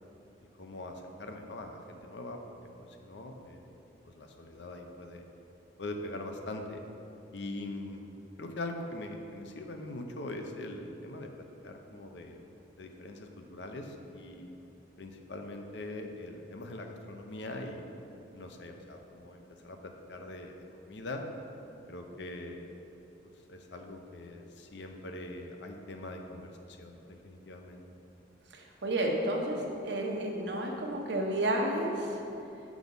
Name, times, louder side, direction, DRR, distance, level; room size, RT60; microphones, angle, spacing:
voice 1, 0.6-3.7 4.0-5.2 5.8-6.8 7.3-8.1 8.4-11.3 11.6-12.4 12.8-14.5 15.0-17.8 18.3-21.2 21.9-22.8 23.2-27.9, left 2 dB, 65° left, 4 dB, 0.6 m, -42 dB
voice 2, 28.5-32.2, right 1 dB, 60° right, 0 dB, 0.9 m, -31 dB
6.1 x 4.8 x 5.3 m, 2.9 s
head